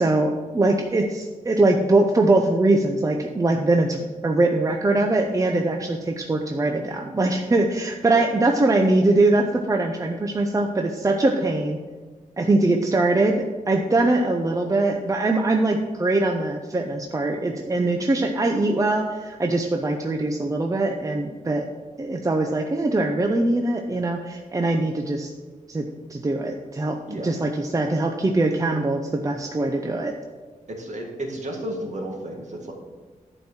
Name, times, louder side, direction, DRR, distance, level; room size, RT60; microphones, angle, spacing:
voice 1, 0.0-11.8 12.4-21.7 22.0-25.3 25.7-30.1, right 2 dB, 25° right, 3 dB, 0.7 m, -22 dB
voice 2, 30.7-32.7, right 1 dB, 60° right, 0 dB, 2.0 m, -32 dB
11.0 x 4.5 x 7.3 m, 1.3 s
wide cardioid pair, 140°, 14 cm